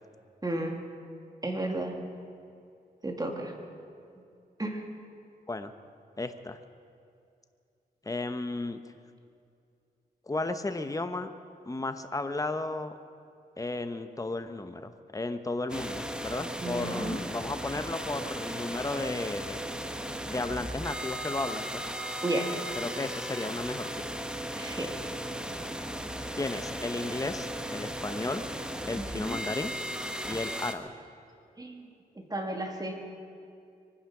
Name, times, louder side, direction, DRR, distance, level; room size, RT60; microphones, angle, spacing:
voice 1, 0.4-0.8 1.4-1.9 3.0-3.5 4.6-4.8 16.6-17.2 22.2-22.6 24.6-24.9 28.9-29.4 31.6-31.9 32.2-33.0, right 1 dB, 25° right, 2 dB, 2.4 m, -33 dB
voice 2, 6.2-6.6 8.0-8.8 10.3-11.3 11.7-13.0 13.6-19.6 20.3-21.8 22.8-23.9 26.4-28.4 28.9-29.7 30.2-30.9, left 2 dB, 20° left, 9 dB, 1.0 m, -34 dB
sound 1, 15.7-30.7, equal, 5° right, 1.2 m, -36 dB
23.5 x 10.0 x 6.1 m, 2.4 s
cardioid pair, 65°, 17 cm